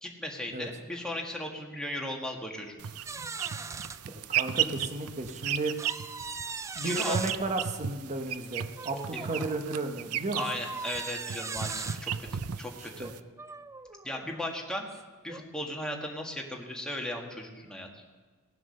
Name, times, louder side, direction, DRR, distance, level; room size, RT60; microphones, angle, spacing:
voice 1, 0.0-2.7 6.8-7.2 9.1-9.3 10.3-13.1 14.0-14.9 15.2-17.9, left 1 dB, 5° left, 0 dB, 1.7 m, -37 dB
sound 1, 2.8-13.2, right 9 dB, 75° right, 0.5 m, -35 dB
sound 2, 3.1-4.0 4.6-4.7 5.8-7.4 8.8-9.6 10.3-12.0 13.0-14.4 14.9-15.0 15.3-15.5, right 4 dB, 15° right, 0.3 m, -39 dB
voice 2, 4.0-5.7 6.7-10.4 12.2-12.3 12.8-13.1, right 2 dB, 30° right, 5 dB, 1.0 m, -34 dB
18.0 x 7.6 x 6.5 m, 1.4 s
head